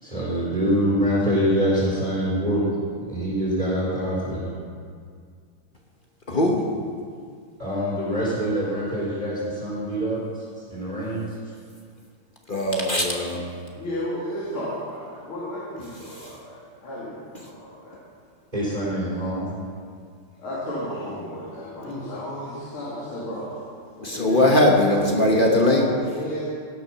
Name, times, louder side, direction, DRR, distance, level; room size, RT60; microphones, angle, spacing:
voice 1, 0.0-4.5 7.6-10.4 10.7-11.2 18.5-19.5, equal, 20° right, -9 dB, 4.3 m, -25 dB
voice 2, 6.3-6.6 12.5-13.4 16.0-16.3 24.0-25.8, left 1 dB, 35° left, 0 dB, 0.9 m, -20 dB
voice 3, 13.7-18.0 20.4-23.6 24.0-26.5, equal, 75° left, -8 dB, 3.2 m, -32 dB
16.5 x 7.0 x 5.9 m, 2.1 s
omnidirectional pair, 2.4 m